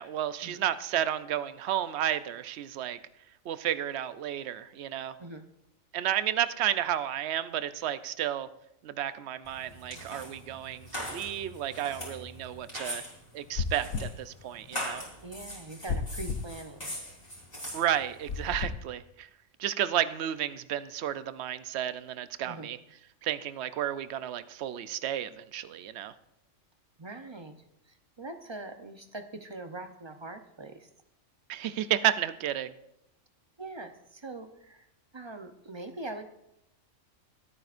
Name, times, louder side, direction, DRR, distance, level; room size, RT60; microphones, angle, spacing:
voice 1, 0.0-3.0 3.5-5.1 5.9-8.5 8.8-13.0 13.3-15.0 17.7-19.3 19.6-22.8 23.2-26.1 31.5-32.7, right 11 dB, 60° right, 13 dB, 0.8 m, -32 dB
sound 1, 9.4-18.6, equal, 30° left, 4.2 m, -42 dB
sound 2, 13.6-14.2 15.9-16.5 18.3-18.8, left 5 dB, 90° left, 1.3 m, -32 dB
voice 2, 15.2-17.0 22.4-22.7 27.0-27.5 27.9-30.9 33.6-34.9 35.1-36.3, right 2 dB, 30° right, 7 dB, 0.6 m, -42 dB
25.5 x 9.2 x 2.5 m, 0.84 s
omnidirectional pair, 1.4 m